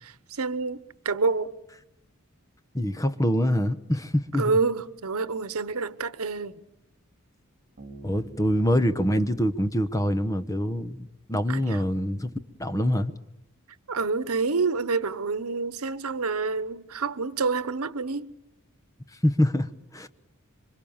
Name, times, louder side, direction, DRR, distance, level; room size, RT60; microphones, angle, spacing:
voice 1, 0.0-1.5 4.4-6.6 11.5-11.8 13.9-18.3, right 4 dB, 85° right, 1.0 m, -28 dB
voice 2, 2.7-4.6 8.0-12.3 12.6-13.1 19.2-20.1, equal, 15° left, 0.9 m, -25 dB
Bass guitar, 11.1-11.3, right 2 dB, 35° right, 4.7 m, -48 dB
27.0 x 24.5 x 7.2 m
head